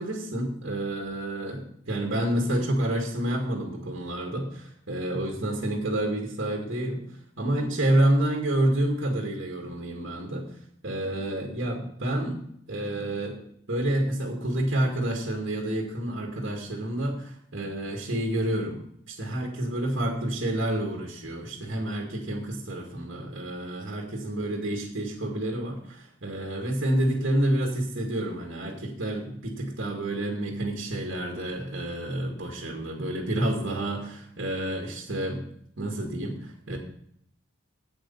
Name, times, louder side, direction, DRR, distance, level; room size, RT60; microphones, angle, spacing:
voice 1, 0.0-7.0 7.4-10.5 10.8-13.4 13.7-18.8 19.1-35.4 35.8-36.8, right 1 dB, 60° right, 1 dB, 2.0 m, -29 dB
8.4 x 8.3 x 5.6 m, 0.69 s
head